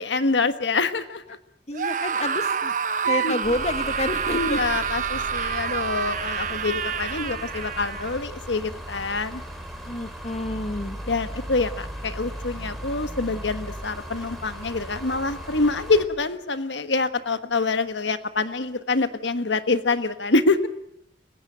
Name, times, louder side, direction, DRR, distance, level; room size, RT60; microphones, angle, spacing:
voice 1, 0.0-1.4 3.0-3.4 4.3-9.4 11.1-20.7, left 3 dB, 85° left, 11 dB, 1.4 m, -26 dB
voice 2, 1.7-2.7 3.0-4.6 9.9-11.0, left 1 dB, 35° left, 10 dB, 1.5 m, -29 dB
Screaming, 1.7-8.2, right 6 dB, 45° right, 0.9 m, -28 dB
sound 1, 3.4-16.1, equal, ahead, 4.3 m, -37 dB
29.0 x 16.5 x 9.0 m, 0.77 s
head